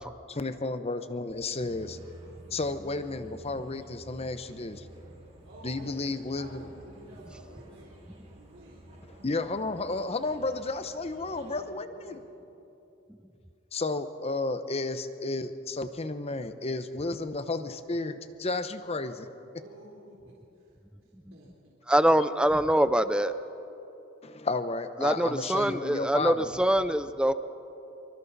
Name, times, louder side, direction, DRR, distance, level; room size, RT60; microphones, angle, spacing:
voice 1, 0.3-2.0 2.5-4.8 5.6-6.6 9.2-12.2 13.7-19.3 24.2-26.3, left 3 dB, 30° left, 10 dB, 0.8 m, -32 dB
sound 1, 1.6-11.6, right 1 dB, 35° right, 5.0 m, -51 dB
voice 2, 5.4-7.9 8.3-8.9 11.2-12.3 19.6-20.7 21.0-21.5, right 1 dB, 80° right, -5 dB, 3.6 m, -50 dB
voice 3, 21.9-23.3 25.0-27.3, right 1 dB, 5° right, 12 dB, 0.5 m, -24 dB
26.0 x 24.0 x 4.1 m, 2.9 s
head